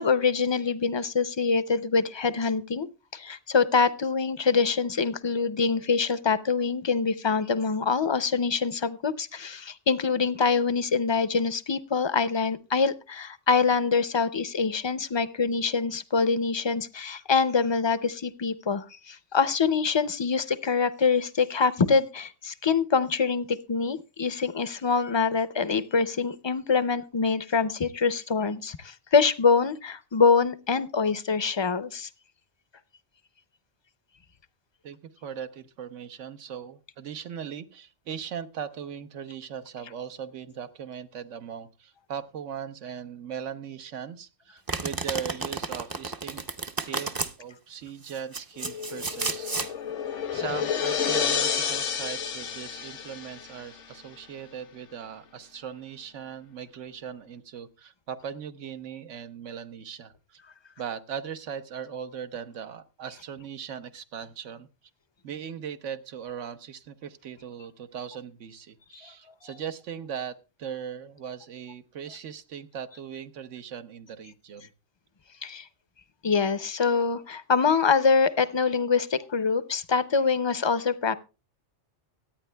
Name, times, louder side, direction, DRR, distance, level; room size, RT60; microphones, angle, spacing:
voice 1, 0.0-2.9 3.1-32.1 69.0-69.1 75.4-75.7 76.2-81.1, left 5 dB, 40° left, 13 dB, 0.4 m, -25 dB
voice 2, 34.8-46.4 46.8-49.6 50.1-60.4 60.8-64.7 65.2-74.7, right 8 dB, 85° right, 10 dB, 1.2 m, -39 dB
Domestic sounds home sounds, 44.7-47.3 48.0-49.7, right 3 dB, 30° right, 0.4 m, -32 dB
sound 1, 48.6-53.8, left 7 dB, 80° left, 1.1 m, -30 dB
24.0 x 9.1 x 2.2 m, 0.29 s
omnidirectional pair, 1.2 m